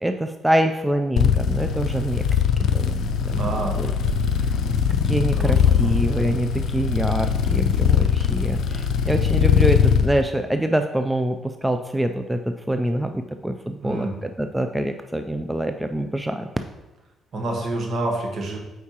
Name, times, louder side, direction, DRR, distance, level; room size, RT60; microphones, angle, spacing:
voice 1, 0.0-2.2 2.7-3.0 3.3-3.4 3.8-3.9 5.1-11.4 11.6-12.4 12.7-16.5, right 1 dB, 5° right, 6 dB, 0.4 m, -25 dB
sound 1, 1.2-10.1, left 7 dB, 70° left, 0.4 m, -21 dB
voice 2, 3.3-3.8 5.3-6.1 13.8-14.2 17.3-18.6, right 2 dB, 55° right, 1 dB, 1.3 m, -28 dB
8.3 x 4.6 x 2.9 m, 1.0 s
cardioid pair, 90°, 0 cm